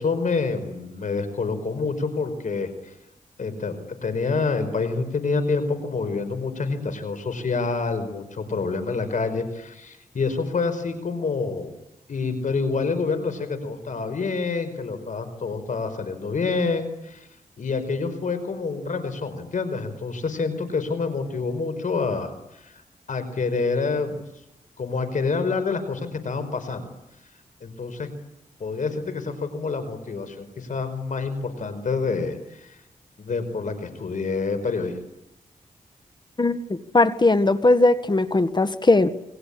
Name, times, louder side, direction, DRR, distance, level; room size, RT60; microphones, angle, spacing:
voice 1, 0.0-2.9 3.4-11.8 12.1-17.3 17.6-22.8 23.1-24.2 24.8-26.9 27.6-28.1 28.6-32.8 33.2-34.9, left 4 dB, 70° left, 9 dB, 5.0 m, -27 dB
voice 2, 36.4-39.1, left 2 dB, 30° left, 11 dB, 1.7 m, -19 dB
29.0 x 23.0 x 8.6 m, 0.87 s
cardioid pair, 60°, 14 cm